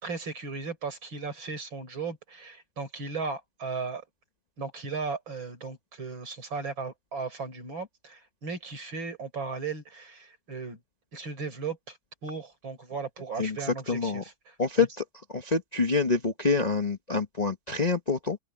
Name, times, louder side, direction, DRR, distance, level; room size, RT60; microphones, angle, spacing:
voice 1, 0.0-4.0 4.6-10.8 11.1-14.9, right 4 dB, 70° right, 5.4 m, -36 dB
voice 2, 13.4-14.2 14.6-15.0 15.3-18.4, left 4 dB, 25° left, 1.0 m, -27 dB
open air
omnidirectional pair, 2.2 m